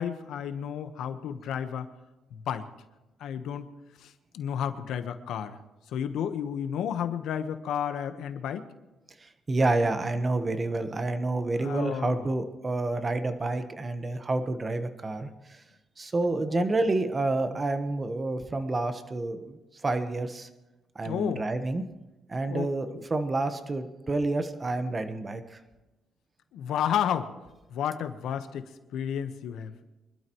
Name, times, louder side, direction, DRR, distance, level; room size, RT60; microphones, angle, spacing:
voice 1, 0.0-1.9 2.3-2.7 3.2-3.7 4.0-5.6 5.9-8.7 11.6-12.3 16.4-16.6 21.0-21.4 22.4-23.0 26.5-27.3 27.7-29.7, left 9 dB, 75° left, 8 dB, 1.2 m, -32 dB
voice 2, 9.2-15.6 16.0-20.5 20.9-21.8 22.3-25.6, right 2 dB, 25° right, 8 dB, 1.2 m, -29 dB
24.5 x 12.5 x 3.1 m, 1.0 s
cardioid pair, 115°, 0 cm